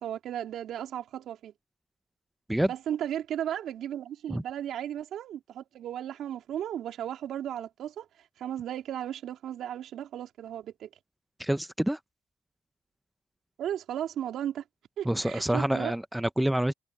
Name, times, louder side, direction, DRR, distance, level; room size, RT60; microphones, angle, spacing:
voice 1, 0.0-1.5 2.7-8.1 8.4-10.9 13.6-14.6 15.0-15.9, right 10 dB, 75° right, 3.2 m, -35 dB
voice 2, 11.4-12.0 15.0-16.7, right 1 dB, 5° right, 0.7 m, -27 dB
cardioid pair, 90°, 0 cm